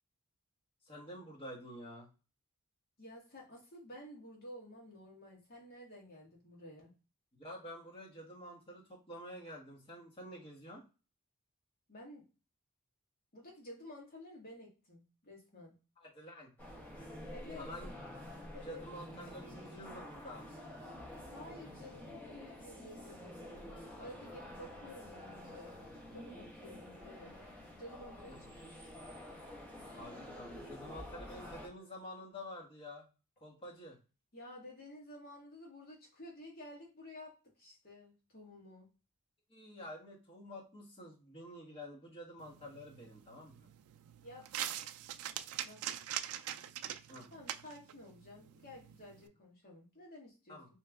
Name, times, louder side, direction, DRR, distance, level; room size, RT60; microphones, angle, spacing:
voice 1, 0.8-2.1 7.3-10.8 16.0-16.5 17.5-18.1 18.5-20.5 28.3-28.5 29.9-33.0 33.4-34.0 39.5-43.7 47.1-47.3 50.5-50.7, equal, 25° left, -3 dB, 1.3 m, -49 dB
voice 2, 3.0-6.9 11.9-12.2 13.3-15.8 17.3-17.7 18.5-18.8 21.3-23.6 24.0-25.8 26.1-27.5 27.8-28.9 34.3-37.3 37.6-38.9 44.2-44.5 45.6-46.0 47.3-50.8, left 1 dB, 45° left, -2 dB, 1.4 m, -52 dB
sound 1, 16.6-31.7, left 1 dB, 5° left, 1.2 m, -49 dB
sound 2, 42.4-49.3, right 11 dB, 80° right, 0.3 m, -44 dB
3.1 x 2.9 x 3.5 m, 0.33 s
head